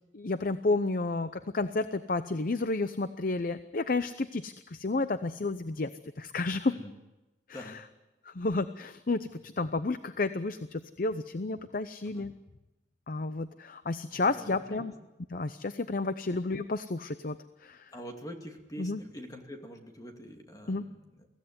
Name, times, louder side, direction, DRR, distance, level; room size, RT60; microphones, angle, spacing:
voice 1, 0.1-5.9 6.2-6.7 8.2-12.3 13.1-14.9 15.3-17.9 18.8-19.0 20.7-20.9, left 3 dB, 50° left, 12 dB, 0.7 m, -31 dB
voice 2, 6.7-7.0 7.5-7.8 9.2-9.4 12.1-12.3 14.1-14.9 17.9-21.3, equal, 20° left, 3 dB, 2.5 m, -45 dB
24.0 x 16.0 x 9.6 m, 1.1 s
head